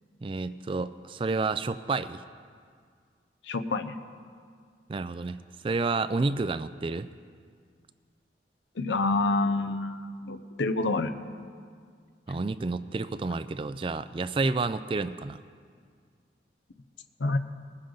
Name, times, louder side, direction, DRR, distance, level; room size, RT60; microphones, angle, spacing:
voice 1, 0.2-2.2 4.9-5.4 5.6-7.1 12.3-15.4, right 3 dB, 30° right, 13 dB, 0.3 m, -30 dB
voice 2, 3.5-4.0 8.8-11.1 17.2-17.4, left 3 dB, 85° left, 9 dB, 0.7 m, -27 dB
20.5 x 9.8 x 3.9 m, 2.1 s
head